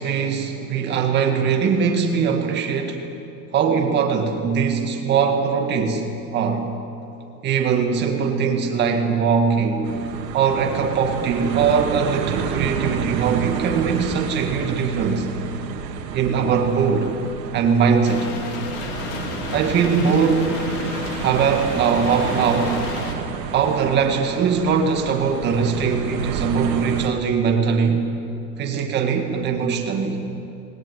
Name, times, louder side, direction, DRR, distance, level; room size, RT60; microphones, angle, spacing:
voice 1, 0.0-3.0 3.5-6.1 6.3-6.6 7.4-9.9 10.3-15.3 16.1-17.1 17.5-18.3 19.5-20.6 21.2-22.8 23.5-28.0 28.6-30.2, right 6 dB, 20° right, 3 dB, 1.9 m, -21 dB
sound 1, 9.8-27.1, right 6 dB, 75° right, 2.7 m, -30 dB
sound 2, 18.0-23.1, left 5 dB, 35° left, 2.4 m, -32 dB
20.5 x 18.5 x 9.4 m, 2.7 s
supercardioid pair, 170°, 50 cm